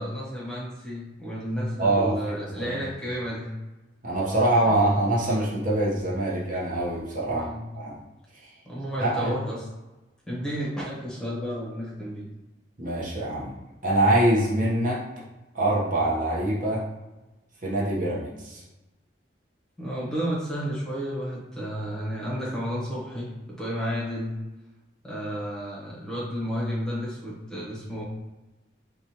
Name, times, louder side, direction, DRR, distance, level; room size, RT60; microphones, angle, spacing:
voice 1, 0.0-3.5 4.6-4.7 7.3-7.7 8.7-9.7 10.3-12.3 19.8-24.3 25.0-28.0, equal, 5° left, -7 dB, 1.1 m, -32 dB
voice 2, 1.8-2.9 4.0-7.5 7.7-8.0 8.4-8.5 9.0-9.3 12.8-13.5 13.8-15.0 15.5-16.8 17.6-18.6, right 1 dB, 50° right, -6 dB, 0.9 m, -24 dB
4.8 x 2.4 x 2.9 m, 1.1 s
head